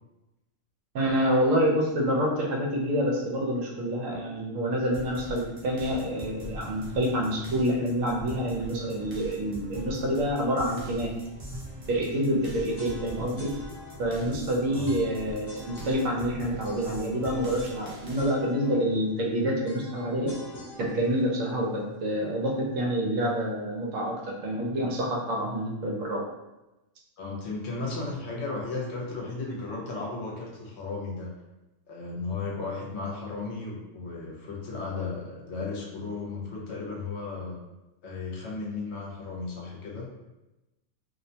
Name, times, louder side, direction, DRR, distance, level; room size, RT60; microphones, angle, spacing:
voice 1, 0.9-11.1 11.9-13.5 14.0-20.4 20.8-26.2, equal, 80° right, -1 dB, 1.0 m, -27 dB
sound 1, 4.9-18.3, right 1 dB, 55° right, 0.3 m, -42 dB
sound 2, 12.4-22.5, left 1 dB, 40° left, 0.3 m, -48 dB
voice 2, 27.2-31.3 31.9-37.6 38.0-40.1, left 3 dB, 65° left, -3 dB, 0.9 m, -35 dB
2.5 x 2.1 x 2.7 m, 0.99 s
omnidirectional pair, 1.4 m